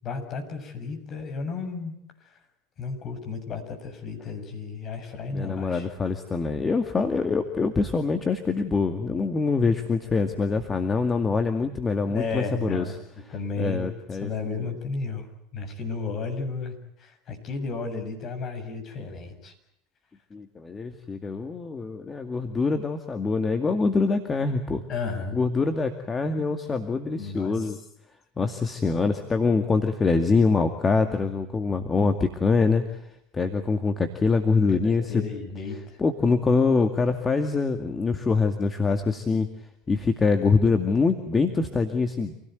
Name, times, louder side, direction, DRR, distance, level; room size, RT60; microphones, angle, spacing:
voice 1, 0.0-2.0 2.2-2.4 2.8-5.9 12.1-12.9 13.3-13.9 14.2-15.3 15.5-19.5 24.9-25.4 27.2-27.8 34.7-36.0, left 4 dB, 40° left, 5 dB, 7.1 m, -33 dB
voice 2, 5.3-12.8 13.6-14.3 14.6-14.7 20.3-24.8 25.3-27.8 28.4-32.8 33.3-35.2 36.0-39.5 39.9-42.3, left 4 dB, 20° left, 6 dB, 2.2 m, -24 dB
27.5 x 17.5 x 9.3 m, 0.76 s
hypercardioid pair, 80°, 0 cm